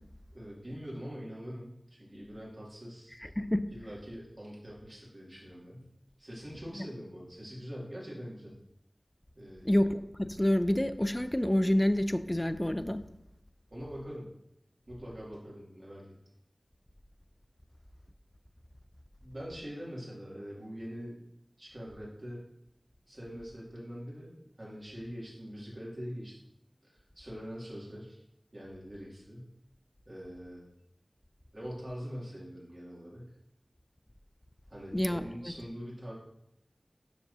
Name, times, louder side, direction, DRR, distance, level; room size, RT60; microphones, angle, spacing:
voice 1, 0.3-3.3 3.7-5.9 6.2-8.6 9.3-9.7 13.7-14.3 14.9-16.1 19.2-21.2 21.6-22.4 23.1-26.4 26.8-28.2 28.5-29.5 30.1-30.6 31.5-33.3 34.7-36.1, equal, 50° right, -6 dB, 2.4 m, -43 dB
voice 2, 9.6-13.0 34.9-35.3, left 1 dB, 20° left, 11 dB, 0.4 m, -27 dB
7.0 x 5.9 x 2.7 m, 0.80 s
wide cardioid pair, 55°, 0 cm